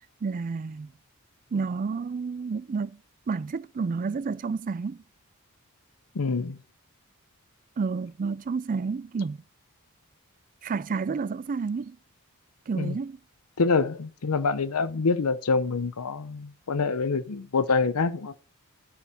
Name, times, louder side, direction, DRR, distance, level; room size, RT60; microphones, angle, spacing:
voice 1, 0.2-0.9 1.5-3.0 3.3-5.0 7.8-9.4 10.6-12.0 12.7-13.2, right 4 dB, 35° right, 0.3 m, -30 dB
voice 2, 6.1-6.6 12.8-13.0 13.6-18.3, left 4 dB, 75° left, 0.7 m, -26 dB
12.0 x 4.7 x 5.7 m
head